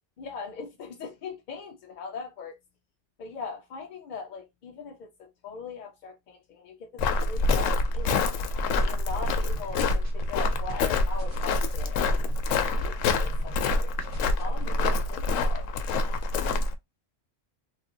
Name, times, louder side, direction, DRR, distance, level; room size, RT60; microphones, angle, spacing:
voice 1, 0.2-2.6 3.2-8.3 8.7-13.9 14.2-15.7, left 5 dB, 60° left, 0.5 m, -40 dB
Walk footsteps, 7.0-16.7, left 3 dB, 90° left, 0.9 m, -26 dB
sound 1, 9.2-13.7 14.0-14.4, left 1 dB, 65° right, 1.4 m, -47 dB
3.1 x 2.5 x 2.6 m
omnidirectional pair, 1.3 m